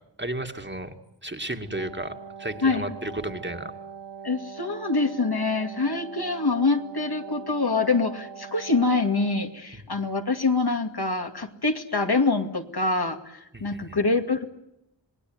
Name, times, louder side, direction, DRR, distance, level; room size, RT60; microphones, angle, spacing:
voice 1, 0.2-0.9 1.2-3.7 9.7-9.8 13.5-14.0, right 1 dB, 25° right, 6 dB, 2.2 m, -33 dB
Wind instrument woodwind instrument, 1.6-9.6, right 7 dB, 80° right, 4.8 m, -42 dB
voice 2, 4.2-14.4, left 3 dB, 60° left, 5 dB, 2.4 m, -25 dB
27.0 x 20.5 x 9.5 m, 0.82 s
wide cardioid pair, 55°, 43 cm